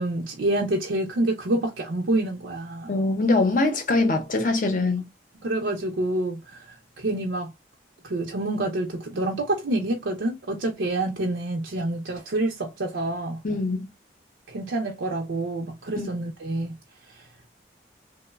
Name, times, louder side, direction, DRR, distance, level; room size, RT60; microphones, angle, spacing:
voice 1, 0.0-2.9 5.4-7.5 8.0-13.4 14.5-16.8 17.1-17.2, right 1 dB, 80° right, 0.5 m, -27 dB
voice 2, 2.9-5.0 13.4-13.9 16.0-16.1, left 3 dB, 45° left, 0.6 m, -23 dB
2.9 x 2.0 x 2.2 m
head